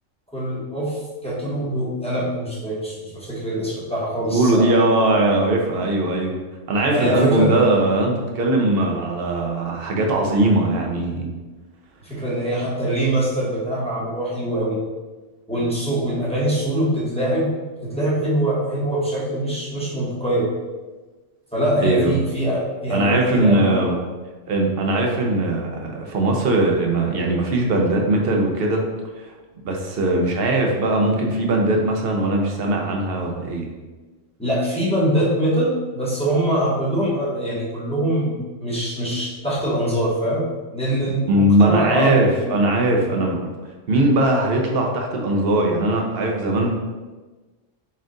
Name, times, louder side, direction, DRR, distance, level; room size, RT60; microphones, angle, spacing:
voice 1, 0.3-4.7 6.9-7.6 12.0-14.8 15.5-17.5 17.8-20.5 21.5-23.9 34.4-40.4 40.7-42.4 43.1-43.2, right 1 dB, 5° left, -8 dB, 1.0 m, -23 dB
voice 2, 4.3-6.4 6.7-11.3 21.8-22.1 22.9-23.9 24.5-28.8 29.2-29.3 29.6-33.7 41.3-43.5 43.9-46.7, right 1 dB, 55° right, 1 dB, 0.8 m, -20 dB
4.3 x 2.4 x 3.7 m, 1.3 s
omnidirectional pair, 1.3 m